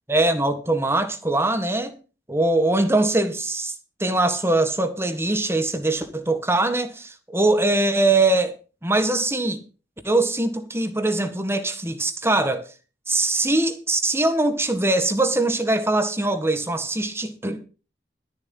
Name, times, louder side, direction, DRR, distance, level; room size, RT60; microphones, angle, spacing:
voice 1, 0.1-1.9 2.3-3.7 4.0-8.6 8.8-9.6 10.0-12.6 13.1-17.6, right 2 dB, 15° right, 1.6 m, -22 dB
13.0 x 7.5 x 5.6 m
head